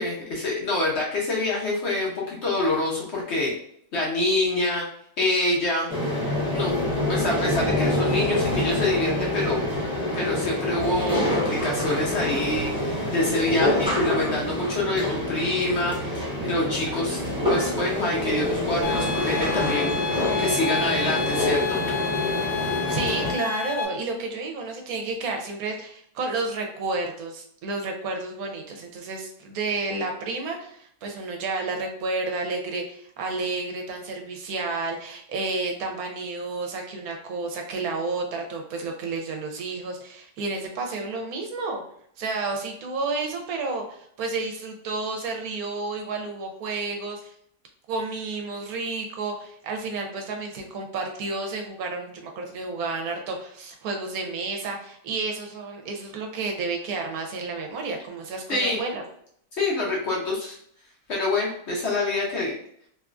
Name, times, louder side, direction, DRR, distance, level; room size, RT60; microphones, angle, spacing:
voice 1, 0.0-3.5 3.9-4.9 5.2-5.9 6.5-6.7 7.1-9.9 10.1-17.2 17.5-21.8 58.5-58.8 59.6-60.6 61.1-62.5, left 2 dB, 55° left, -4 dB, 0.9 m, -26 dB
sound 1, 5.9-23.3, left 1 dB, 5° right, 0.8 m, -26 dB
sound 2, 18.8-23.9, left 5 dB, 75° left, 1.2 m, -30 dB
voice 2, 22.9-41.8 42.2-47.3 47.9-59.0, right 3 dB, 75° right, 3 dB, 1.0 m, -31 dB
3.1 x 2.3 x 2.4 m, 0.68 s
omnidirectional pair, 1.6 m